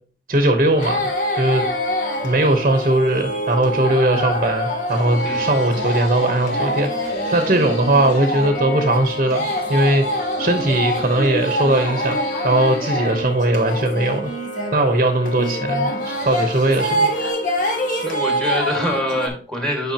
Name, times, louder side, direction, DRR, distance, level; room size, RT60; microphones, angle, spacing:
voice 1, 0.3-1.1 1.4-1.6 2.2-12.2 12.4-14.3 14.7-17.1, right 1 dB, 45° right, 6 dB, 1.0 m, -19 dB
sound 1, 0.7-19.3, equal, 50° left, 1.4 m, -25 dB
sound 2, 4.9-8.5 9.2-13.3 15.9-17.3, equal, 85° left, 3.6 m, -33 dB
voice 2, 18.0-19.9, equal, 5° left, 2 dB, 1.8 m, -24 dB
9.0 x 5.5 x 2.8 m, 0.41 s
head